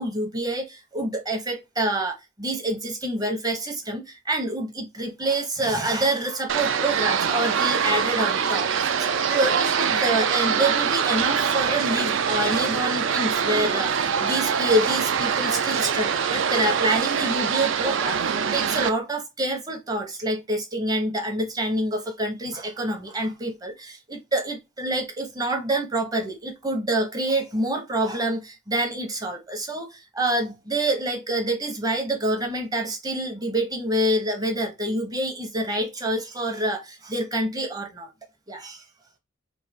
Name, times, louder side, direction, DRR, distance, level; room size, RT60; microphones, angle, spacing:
voice 1, 0.0-38.1 38.5-38.8, right 1 dB, 20° right, 0.8 m, -27 dB
sound 1, 6.5-18.9, right 7 dB, 70° right, 0.4 m, -24 dB
3.3 x 2.5 x 4.3 m
head